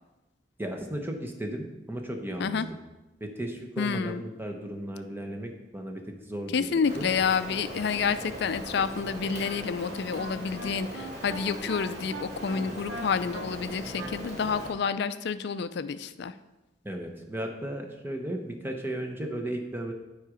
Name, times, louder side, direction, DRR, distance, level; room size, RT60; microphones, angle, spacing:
voice 1, 0.6-2.8 3.2-7.1 16.8-19.9, right 1 dB, 10° right, 3 dB, 0.8 m, -35 dB
voice 2, 3.8-4.2 6.5-16.3, left 6 dB, 60° left, 13 dB, 0.4 m, -29 dB
Rain, 6.9-14.7, equal, 35° right, 1.8 m, -40 dB
Wind instrument woodwind instrument, 9.1-14.7, right 2 dB, 85° right, 1.0 m, -41 dB
9.2 x 4.9 x 5.0 m, 1.0 s
head